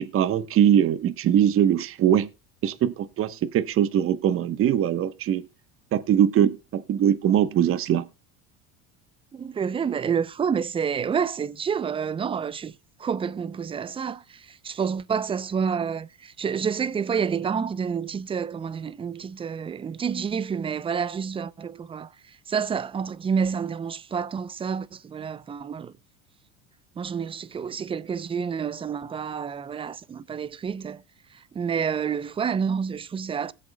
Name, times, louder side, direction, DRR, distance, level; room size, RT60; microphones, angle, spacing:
voice 1, 0.0-2.3 2.6-5.5 5.9-8.1, right 10 dB, 40° right, 1.0 m, -22 dB
voice 2, 9.3-25.9 27.0-31.0 31.3-33.5, right 6 dB, 15° right, 0.5 m, -29 dB
19.0 x 7.7 x 2.2 m
supercardioid pair, 110°, 33 cm